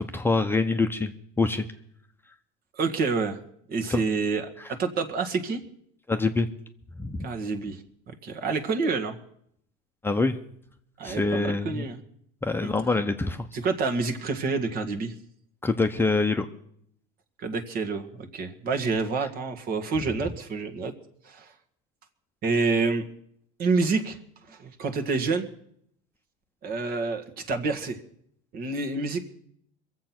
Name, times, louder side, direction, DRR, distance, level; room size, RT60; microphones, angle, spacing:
voice 1, 0.1-1.6 3.9-4.0 6.1-6.5 7.0-7.3 10.0-10.4 11.0-11.8 12.4-13.5 15.6-16.5, left 3 dB, 10° left, 6 dB, 0.8 m, -25 dB
voice 2, 2.8-3.4 3.7-5.6 7.2-7.8 8.1-9.2 11.0-12.0 12.6-12.7 13.5-15.1 17.4-20.9 21.2-21.5 22.4-23.1 23.6-24.2 24.5-25.5 26.6-28.0 28.5-29.2, right 4 dB, 45° right, 7 dB, 1.8 m, -28 dB
22.5 x 7.7 x 6.0 m, 0.69 s
supercardioid pair, 110°, 21 cm